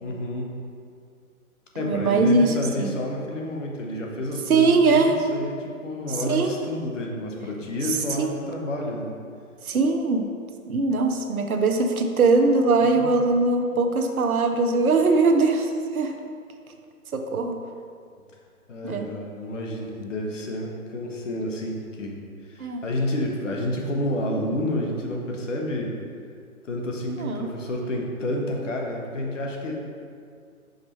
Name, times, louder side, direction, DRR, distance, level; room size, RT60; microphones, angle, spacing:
voice 1, 0.0-0.5 1.7-9.1 13.0-13.1 18.7-22.2 22.5-25.9 26.6-29.7, left 1 dB, 55° left, 0 dB, 1.1 m, -29 dB
voice 2, 1.8-2.9 4.5-5.1 6.3-6.5 8.2-8.3 9.6-10.3 10.7-16.1 17.1-17.6 18.8-19.1 22.6-22.8 27.2-27.5, right 3 dB, 70° right, 5 dB, 0.8 m, -21 dB
5.3 x 4.1 x 4.4 m, 2.2 s
figure-of-eight pair, 145°, 44 cm